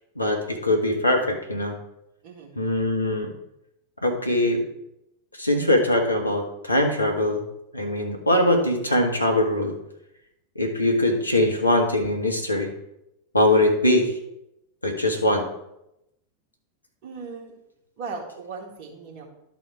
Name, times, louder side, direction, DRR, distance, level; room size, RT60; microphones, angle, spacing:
voice 1, 0.2-1.8 2.6-3.3 4.0-4.6 5.3-7.5 7.7-9.7 10.5-12.7 13.3-14.1 14.8-15.4, left 1 dB, 85° left, 2 dB, 1.3 m, -22 dB
voice 2, 2.2-2.6 17.0-17.5 18.0-19.2, right 4 dB, 45° right, 0 dB, 2.1 m, -37 dB
12.5 x 4.2 x 4.8 m, 0.83 s
figure-of-eight pair, 90°, 0 cm